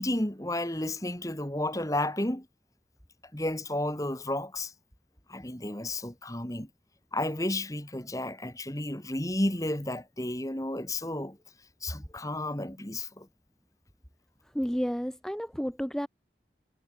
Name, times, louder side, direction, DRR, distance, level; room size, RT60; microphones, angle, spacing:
voice 1, 0.0-2.5 3.3-4.7 5.3-6.7 7.1-11.4 11.8-13.3, left 1 dB, 20° left, 2.3 m, -32 dB
voice 2, 14.5-16.1, equal, 5° left, 1.1 m, -31 dB
head